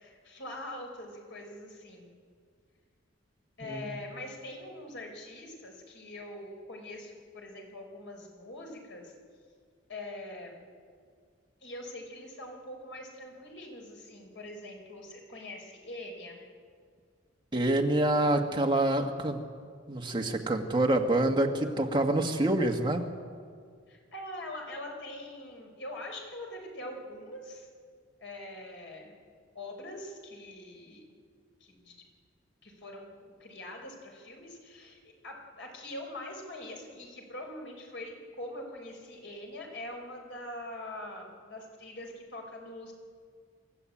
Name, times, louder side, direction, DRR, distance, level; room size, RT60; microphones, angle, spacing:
voice 1, 0.0-2.1 3.6-9.1 9.9-10.6 11.6-16.4 23.9-27.7 28.2-29.1 29.5-31.1 31.6-32.0 32.6-42.9, left 1 dB, 65° left, 1 dB, 4.9 m, -43 dB
voice 2, 3.6-3.9 17.5-19.4 19.9-23.0, right 1 dB, 25° right, 2 dB, 1.8 m, -26 dB
27.0 x 14.0 x 8.6 m, 2.1 s
head